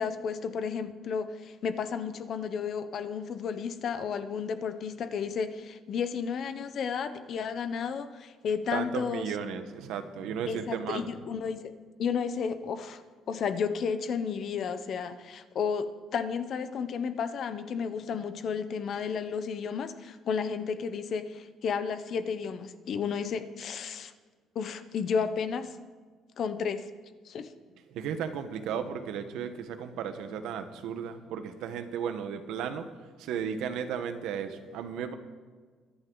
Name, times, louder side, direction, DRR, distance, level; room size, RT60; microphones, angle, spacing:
voice 1, 0.0-9.3 10.5-11.7 12.0-13.0 13.3-24.1 24.5-25.8 26.4-26.9 27.2-27.5, left 6 dB, 45° left, 10 dB, 0.9 m, -32 dB
voice 2, 8.7-11.2 27.9-32.9 33.2-35.1, right 7 dB, 75° right, 8 dB, 1.2 m, -34 dB
23.5 x 10.5 x 3.9 m, 1.5 s
cardioid pair, 160°, 0 cm